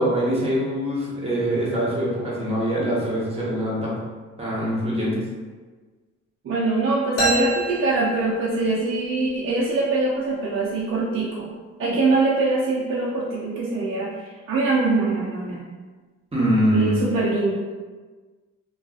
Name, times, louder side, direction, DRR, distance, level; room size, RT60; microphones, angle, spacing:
voice 1, 0.0-3.9 4.4-5.1 16.3-17.0, equal, 20° right, -6 dB, 0.9 m, -23 dB
voice 2, 6.4-11.5 11.8-15.6 16.7-17.5, right 3 dB, 45° right, -5 dB, 0.5 m, -23 dB
sound 1, 7.2-8.9, right 2 dB, 50° left, 1.1 m, -27 dB
2.6 x 2.3 x 2.3 m, 1.4 s
cardioid pair, 90°, 30 cm